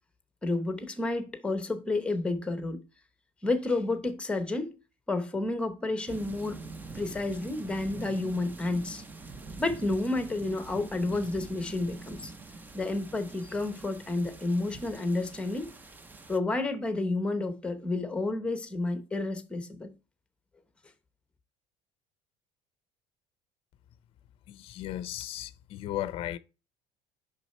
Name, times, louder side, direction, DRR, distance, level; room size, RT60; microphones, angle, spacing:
voice 1, 0.4-2.8 3.4-4.8 5.1-6.6 6.9-9.0 9.6-12.3 12.7-15.7 16.3-19.9, left 2 dB, 10° left, 0.9 m, -30 dB
sound 1, 6.1-16.4, right 3 dB, 15° right, 0.5 m, -45 dB
voice 2, 24.5-26.4, left 13 dB, 45° left, 0.6 m, -36 dB
6.3 x 5.6 x 4.3 m
cardioid pair, 170°, 13 cm